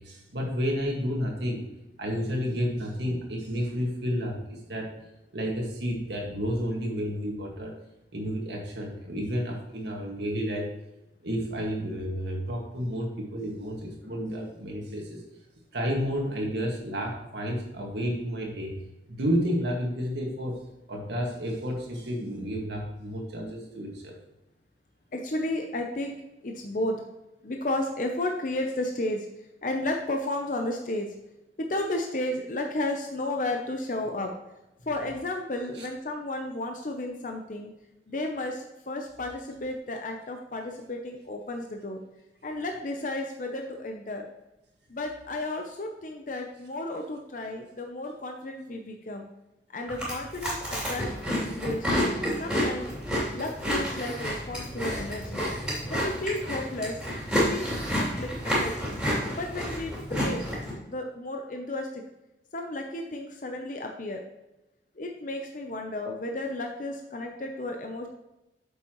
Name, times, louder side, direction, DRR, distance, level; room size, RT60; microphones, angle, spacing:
voice 1, 0.0-1.6 2.0-4.9 5.3-7.7 8.1-10.7 11.2-15.2 15.7-18.8 19.1-20.6 20.9-24.2 35.7-35.9, equal, 75° right, 0 dB, 1.8 m, -31 dB
voice 2, 25.1-26.2 26.4-27.0 27.4-29.3 29.6-31.1 31.6-34.3 34.9-37.7 38.1-42.0 42.4-44.2 44.9-49.3 49.7-52.1 52.4-52.9 53.3-55.5 55.9-57.0 57.5-59.0 59.4-60.4 60.9-62.0 62.5-64.2 65.0-68.1, left 1 dB, 45° left, 3 dB, 0.7 m, -33 dB
Chewing mastication, 49.9-60.7, equal, 5° right, 2.8 m, -30 dB
8.4 x 7.0 x 3.1 m, 0.96 s
head